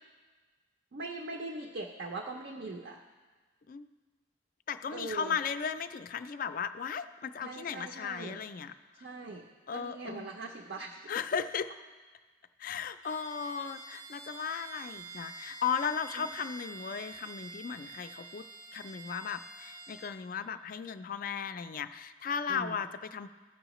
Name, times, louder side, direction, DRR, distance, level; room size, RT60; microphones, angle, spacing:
voice 1, 0.9-3.0 4.9-5.3 7.4-8.4 8.9-9.5 9.7-11.1 16.2-16.3 22.5-22.8, right 3 dB, 55° right, 2 dB, 0.5 m, -41 dB
voice 2, 4.7-9.1 9.7-10.3 11.1-11.8 12.6-18.5 18.7-23.3, left 6 dB, 45° left, 11 dB, 0.3 m, -36 dB
Bowed string instrument, 13.0-20.2, right 3 dB, 90° right, 2.3 m, -47 dB
15.5 x 5.6 x 3.0 m, 1.4 s
head